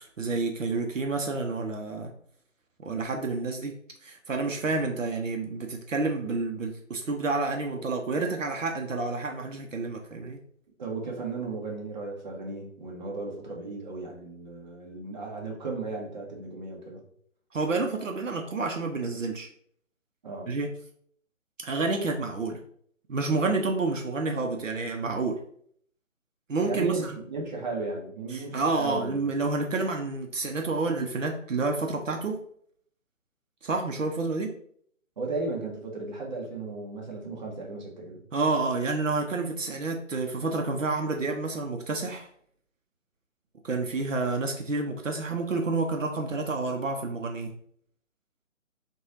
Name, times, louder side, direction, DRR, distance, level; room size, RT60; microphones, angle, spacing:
voice 1, 0.0-2.1 2.8-3.7 4.0-10.4 17.5-19.5 20.5-20.7 21.6-22.6 23.1-25.4 26.5-27.2 28.3-32.4 33.6-34.5 38.3-42.3 43.6-47.5, right 3 dB, 70° right, 3 dB, 0.6 m, -29 dB
voice 2, 10.8-17.0 20.2-20.5 26.7-29.2 35.2-38.2, right 3 dB, 35° right, -1 dB, 0.8 m, -35 dB
3.0 x 2.3 x 3.6 m, 0.63 s
figure-of-eight pair, 140°, 39 cm